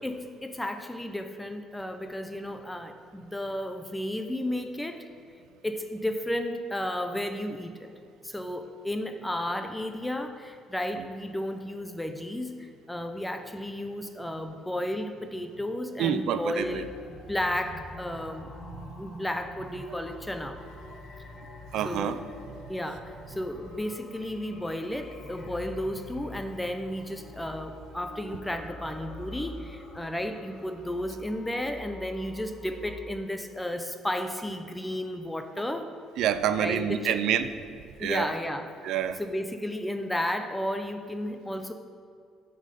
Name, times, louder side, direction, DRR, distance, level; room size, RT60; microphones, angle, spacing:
voice 1, 0.0-5.0 5.6-7.9 8.2-18.5 19.0-20.6 21.8-22.2 22.7-35.9 36.6-37.2 38.0-38.7 39.2-41.7, left 1 dB, 10° left, 7 dB, 0.5 m, -33 dB
voice 2, 16.0-16.9 21.7-22.2 36.2-37.5 38.0-38.3 38.8-39.2, right 9 dB, 75° right, 11 dB, 0.4 m, -27 dB
sound 1, 16.6-33.1, left 2 dB, 40° left, 1.2 m, -46 dB
7.4 x 5.5 x 5.2 m, 2.4 s
cardioid pair, 95°, 0 cm